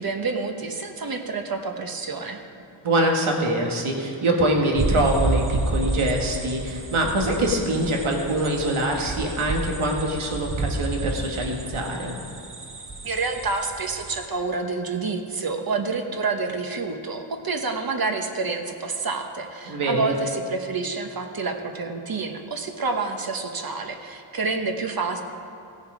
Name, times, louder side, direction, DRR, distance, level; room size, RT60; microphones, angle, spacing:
voice 1, 0.0-2.4 13.0-25.2, right 4 dB, 45° right, 5 dB, 1.1 m, -28 dB
voice 2, 2.8-12.2 19.7-20.2, right 1 dB, 85° right, 1 dB, 1.7 m, -24 dB
sound 1, 4.8-14.3, right 2 dB, 25° right, 0.9 m, -30 dB
16.5 x 7.1 x 5.0 m, 2.6 s
wide cardioid pair, 95°, 48 cm